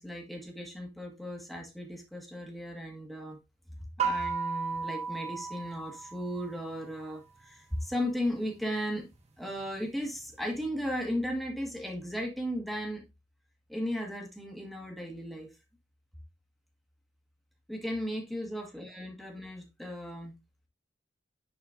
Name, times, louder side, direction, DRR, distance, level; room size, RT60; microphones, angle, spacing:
voice 1, 0.0-3.4 4.0-9.1 9.4-13.0 13.7-15.5 17.7-20.3, equal, ahead, 1.6 m, -36 dB
sound 1, 4.0-6.7, right 5 dB, 35° right, 1.0 m, -34 dB
9.8 x 4.3 x 2.6 m
head